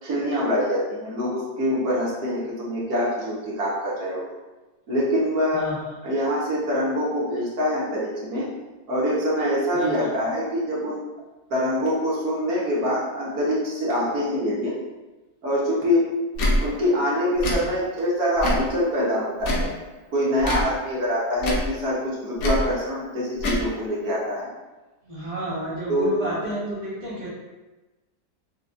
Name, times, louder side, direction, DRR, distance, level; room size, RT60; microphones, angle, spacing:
voice 1, 0.0-4.2 4.9-5.6 6.0-8.5 8.9-11.0 11.5-14.7 15.4-16.1 16.6-19.7 20.1-24.5 25.9-26.1, equal, 60° right, -6 dB, 1.4 m, -24 dB
Tick / Tick-tock, 16.3-16.6 17.4-17.6 18.4-18.7 19.4-19.7 20.4-20.7 21.4-21.7 22.4-22.6 23.4-23.6, left 1 dB, 60° left, 1.1 m, -24 dB
voice 2, 25.0-27.3, right 1 dB, 30° left, -10 dB, 0.7 m, -30 dB
5.6 x 2.3 x 2.5 m, 1.2 s
omnidirectional pair, 1.8 m